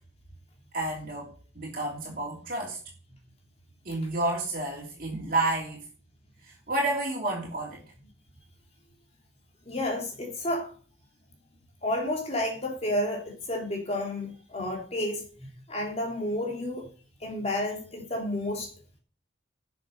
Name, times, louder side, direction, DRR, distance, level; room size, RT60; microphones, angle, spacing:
voice 1, 0.7-1.3 1.5-2.8 3.8-5.8 6.5-7.8, right 2 dB, 45° right, 3.0 m, -30 dB
voice 2, 9.7-10.7 11.8-16.9 17.2-18.7, left 1 dB, 30° left, 3.1 m, -31 dB
12.5 x 7.2 x 5.4 m
head